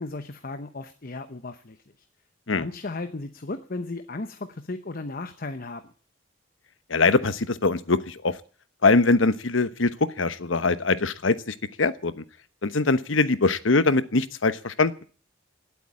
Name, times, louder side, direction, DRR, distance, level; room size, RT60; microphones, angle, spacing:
voice 1, 0.0-1.8 2.5-5.9, left 2 dB, 45° left, 10 dB, 0.9 m, -35 dB
voice 2, 6.9-8.4 8.8-12.2 12.6-15.0, left 3 dB, 80° left, 14 dB, 1.1 m, -22 dB
18.0 x 8.4 x 8.7 m, 0.42 s
head